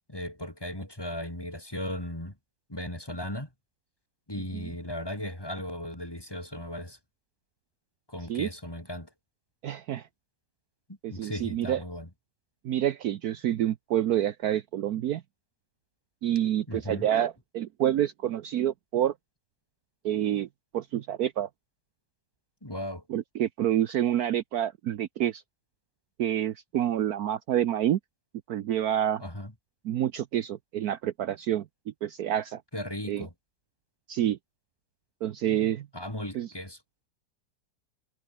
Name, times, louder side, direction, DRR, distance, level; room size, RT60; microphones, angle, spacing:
voice 1, 0.1-2.3 2.7-3.5 4.3-7.0 8.1-9.1 11.1-12.1 16.7-17.1 22.6-23.0 29.2-29.5 32.7-33.3 35.9-36.8, left 1 dB, 15° left, 3.8 m, -36 dB
voice 2, 9.6-10.1 11.0-11.8 12.6-15.2 16.2-19.1 20.0-20.5 20.7-21.5 23.1-25.4 26.2-28.0 28.5-29.2 29.8-31.6 32.0-32.6 33.1-33.3 34.1-34.4 35.2-35.9 36.3-36.5, right 11 dB, 65° right, 1.2 m, -28 dB
omnidirectional pair, 1.9 m